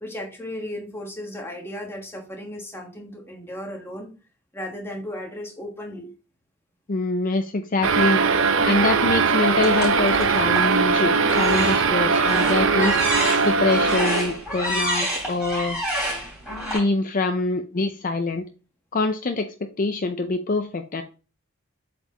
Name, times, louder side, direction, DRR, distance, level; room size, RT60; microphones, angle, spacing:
voice 1, 0.0-4.1 4.5-6.1, left 1 dB, 10° left, 2 dB, 1.3 m, -35 dB
voice 2, 6.9-8.2 8.7-13.0 13.4-15.8 16.7-18.4 18.9-19.5 19.8-21.0, left 3 dB, 40° left, 6 dB, 0.5 m, -24 dB
sound 1, 7.8-14.4, right 4 dB, 70° right, 0.7 m, -20 dB
sound 2, 9.6-10.7 11.2-16.8, equal, 5° right, 3.5 m, -28 dB
8.0 x 4.3 x 2.9 m, 0.34 s
head